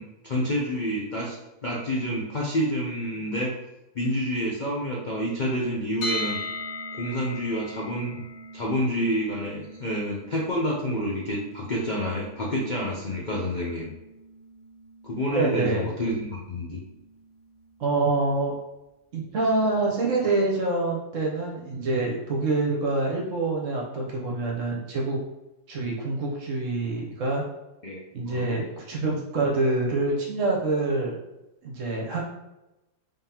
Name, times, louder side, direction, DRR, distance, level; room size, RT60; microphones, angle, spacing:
voice 1, 0.0-1.4 1.6-3.5 3.9-6.4 6.9-8.2 8.5-13.9 15.0-16.8 27.8-28.0 28.2-28.5, equal, 80° left, -4 dB, 0.4 m, -28 dB
sound 1, 6.0-17.9, left 1 dB, 45° left, 1.3 m, -40 dB
voice 2, 15.3-15.9 17.8-18.5 19.1-25.2 25.7-27.4 28.1-31.2 31.6-32.2, right 2 dB, 60° right, -1 dB, 0.9 m, -26 dB
3.6 x 3.5 x 2.8 m, 0.96 s
omnidirectional pair, 1.8 m